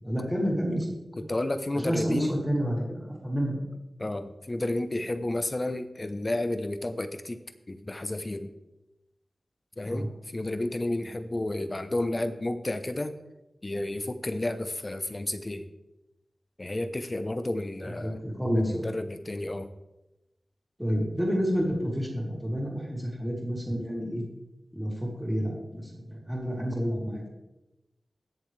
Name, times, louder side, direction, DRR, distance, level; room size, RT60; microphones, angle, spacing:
voice 1, 0.0-1.2 1.7-3.6 9.9-10.1 17.8-18.9 20.8-24.2 24.7-27.3, equal, ahead, -4 dB, 3.3 m, -29 dB
voice 2, 1.3-2.4 4.0-7.4 7.7-8.5 9.8-13.2 13.6-15.7 16.6-18.2 18.5-19.7, left 1 dB, 30° left, 10 dB, 0.8 m, -31 dB
21.0 x 7.2 x 3.3 m, 0.99 s
wide cardioid pair, 95°, 0 cm